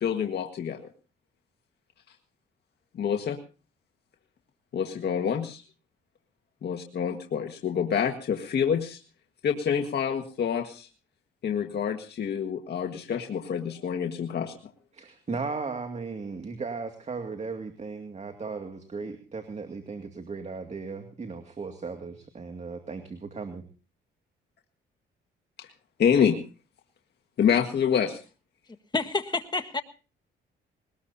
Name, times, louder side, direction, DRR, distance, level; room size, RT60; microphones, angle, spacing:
voice 1, 0.0-0.8 2.9-3.4 4.7-5.6 6.6-9.0 9.4-10.9 11.4-14.6 25.6-25.7 26.0-26.4 27.4-28.2, left 7 dB, 55° left, 4 dB, 1.7 m, -27 dB
voice 2, 14.9-23.6, right 4 dB, 35° right, 6 dB, 2.3 m, -36 dB
voice 3, 28.9-29.8, left 3 dB, 20° left, 7 dB, 1.7 m, -28 dB
21.0 x 19.5 x 2.8 m, 0.36 s
cardioid pair, 90°, 20 cm